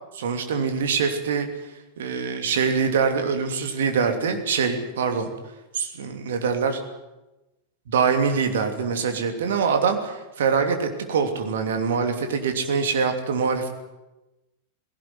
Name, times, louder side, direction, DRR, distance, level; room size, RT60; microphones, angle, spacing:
voice 1, 0.1-1.5 2.0-5.3 5.7-6.8 7.9-13.7, right 5 dB, 60° right, 6 dB, 2.9 m, -24 dB
19.0 x 17.0 x 9.7 m, 1.0 s
figure-of-eight pair, 90°, 0 cm